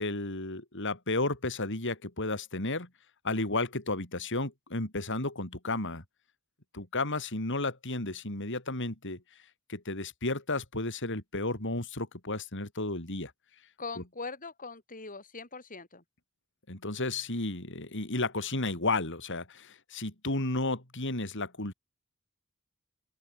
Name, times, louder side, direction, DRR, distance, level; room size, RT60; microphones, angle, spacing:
voice 1, 0.0-2.9 3.2-6.0 6.7-9.2 9.7-13.3 14.0-14.1 16.7-21.7, left 2 dB, 60° left, 5.8 m, -33 dB
voice 2, 13.8-16.0, left 4 dB, 40° left, 7.8 m, -41 dB
open air
head